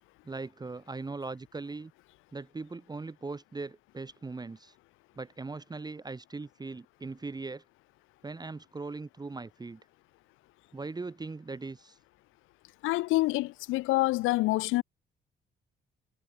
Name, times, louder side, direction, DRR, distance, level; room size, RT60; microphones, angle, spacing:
voice 1, 0.2-1.9 2.3-4.7 5.2-7.6 8.2-9.8 10.7-12.0, right 3 dB, 20° right, 1.0 m, -40 dB
voice 2, 12.8-14.8, left 19 dB, 90° left, 0.4 m, -27 dB
cardioid pair, 90°, 20 cm